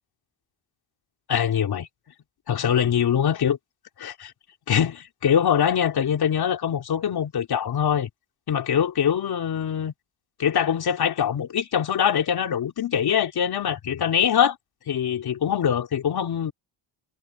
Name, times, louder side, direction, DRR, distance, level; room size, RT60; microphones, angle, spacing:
voice 1, 1.3-1.9 2.5-3.6 4.0-4.3 4.7-8.1 8.5-9.9 10.4-14.6 14.9-16.5, left 8 dB, 50° left, 3.8 m, -23 dB
cardioid pair, 145°, 47 cm